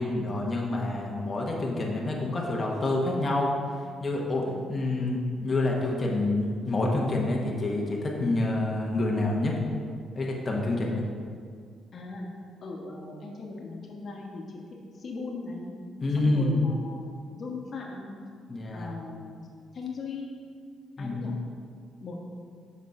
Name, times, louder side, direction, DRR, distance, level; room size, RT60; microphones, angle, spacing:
voice 1, 0.0-3.5 4.0-4.4 4.7-9.6 10.1-11.0 16.0-16.7 18.5-18.9 21.0-21.3, left 2 dB, 30° left, -1 dB, 1.1 m, -27 dB
voice 2, 11.9-12.3 12.6-14.6 15.0-15.7 16.2-18.1 18.7-19.5 19.7-20.3 21.0-21.3 22.0-22.2, left 3 dB, 50° left, 0 dB, 1.3 m, -38 dB
6.5 x 5.4 x 4.8 m, 2.1 s
cardioid pair, 90°, 0 cm